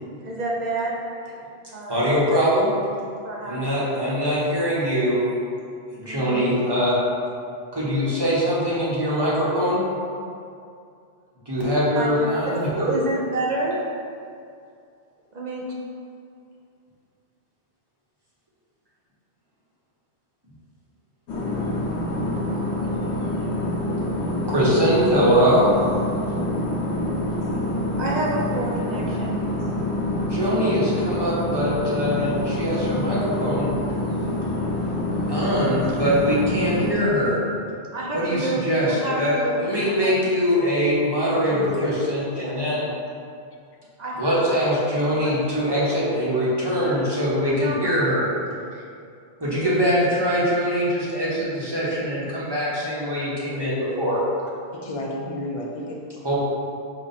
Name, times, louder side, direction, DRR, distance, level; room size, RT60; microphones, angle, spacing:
voice 1, 0.2-1.0 1.7-2.0 3.2-3.6 6.0-6.5 12.0-12.4 12.8-13.8 15.3-15.7 28.0-29.4 34.1-34.4 37.9-40.1 44.0-44.6 44.9-45.7 47.6-48.3 48.7-48.8 49.4-49.8, right 2 dB, 50° right, -3 dB, 0.6 m, -29 dB
voice 2, 1.9-2.7 3.5-5.3 5.9-7.0 7.7-9.8 11.5-12.9 24.5-25.7 30.2-33.7 35.3-37.4 38.1-42.9 44.2-48.3 49.4-54.2 56.2-56.4, equal, 25° right, -8 dB, 1.0 m, -22 dB
sound 1, 21.3-36.9, left 1 dB, 85° left, 1.1 m, -26 dB
voice 3, 41.3-42.8 46.3-46.4 54.7-56.1, left 1 dB, 45° left, -1 dB, 0.5 m, -33 dB
5.2 x 2.4 x 4.1 m, 2.4 s
omnidirectional pair, 1.1 m